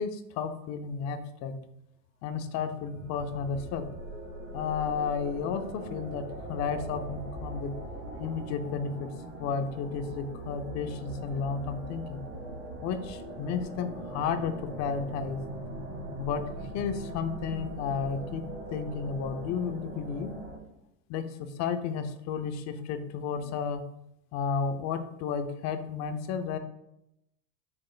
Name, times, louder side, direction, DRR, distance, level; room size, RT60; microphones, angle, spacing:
voice 1, 0.0-1.6 2.2-3.9 4.5-9.1 9.4-12.2 12.8-15.4 16.2-16.4 16.7-18.4 18.7-20.3 21.1-23.8 24.3-26.6, left 6 dB, 40° left, 9 dB, 0.6 m, -32 dB
sound 1, 2.5-20.6, right 1 dB, 30° right, 1.7 m, -41 dB
6.6 x 3.4 x 2.3 m, 0.84 s
hypercardioid pair, 110°, 40 cm